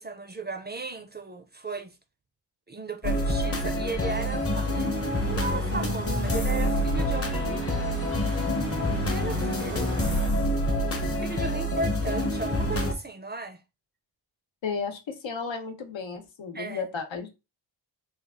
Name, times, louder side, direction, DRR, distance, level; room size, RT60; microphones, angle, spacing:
voice 1, 0.0-2.0 2.7-7.6 9.0-10.1 11.2-13.6 16.5-16.9, right 3 dB, 25° right, 0.5 m, -36 dB
sound 1, 3.0-12.9, equal, 30° left, 0.7 m, -27 dB
sound 2, 3.3-10.3, right 2 dB, 90° right, 1.2 m, -38 dB
voice 2, 14.6-17.3, left 5 dB, 85° left, 0.9 m, -33 dB
3.2 x 2.3 x 3.5 m
wide cardioid pair, 115°, 44 cm